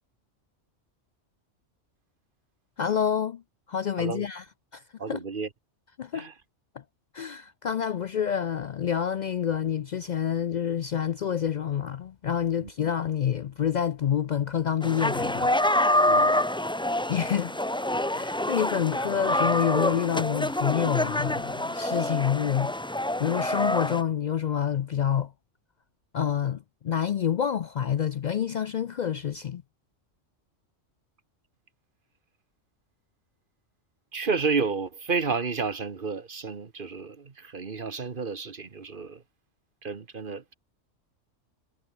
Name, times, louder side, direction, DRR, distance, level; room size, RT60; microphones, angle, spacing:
voice 1, 2.8-3.4 3.7-4.4 4.7-4.8 5.1-5.2 6.0-6.3 7.1-15.5 17.1-17.6 18.1-22.7 23.2-25.3 26.1-29.6, left 9 dB, 70° left, 0.4 m, -28 dB
voice 2, 5.0-5.5 6.1-6.3 12.6-12.7 16.1-16.3 34.1-39.2 39.8-40.5, right 4 dB, 45° right, 1.4 m, -31 dB
sound 1, 14.8-24.0, left 1 dB, 5° left, 0.4 m, -26 dB
omnidirectional pair, 1.3 m